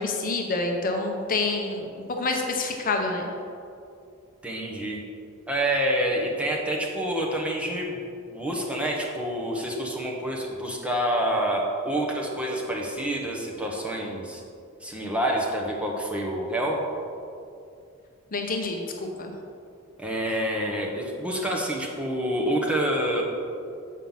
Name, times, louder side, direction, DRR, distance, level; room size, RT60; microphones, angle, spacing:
voice 1, 0.0-3.3 18.3-19.3, left 3 dB, 40° left, 2 dB, 0.7 m, -28 dB
voice 2, 4.4-5.0 5.5-14.4 14.8-16.9 20.0-23.2, right 1 dB, 5° right, -2 dB, 1.1 m, -27 dB
7.3 x 5.5 x 5.6 m, 2.5 s
head